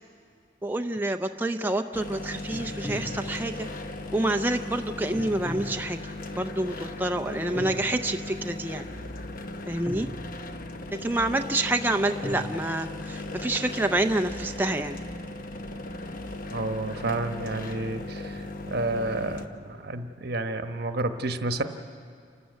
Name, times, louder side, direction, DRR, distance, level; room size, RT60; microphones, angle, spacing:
voice 1, 0.6-3.7 4.1-6.0 6.3-8.9 9.7-10.1 11.0-15.0, right 1 dB, 10° right, 5 dB, 0.5 m, -28 dB
sound 1, 1.9-19.5, left 2 dB, 50° left, 1.0 m, -37 dB
sound 2, 2.5-3.8 5.1-6.4 7.6-8.5 9.9-10.8 12.2-12.6, left 1 dB, 5° left, 0.9 m, -39 dB
voice 2, 16.5-21.6, right 2 dB, 65° right, 8 dB, 1.1 m, -30 dB
29.0 x 13.0 x 8.2 m, 2.4 s
head